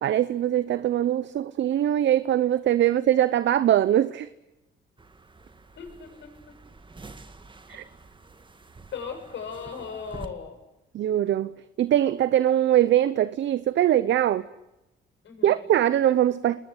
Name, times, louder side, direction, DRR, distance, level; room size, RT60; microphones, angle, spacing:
voice 1, 0.0-4.3 7.7-7.8 10.9-11.5 11.8-14.4 15.4-16.6, right 11 dB, 65° right, 0.9 m, -22 dB
sound 1, 5.0-10.3, right 3 dB, 25° right, 2.0 m, -47 dB
voice 2, 5.8-6.3 8.9-10.6 15.2-15.6, left 6 dB, 70° left, 7.8 m, -37 dB
29.0 x 21.0 x 8.1 m
cardioid pair, 90°, 20 cm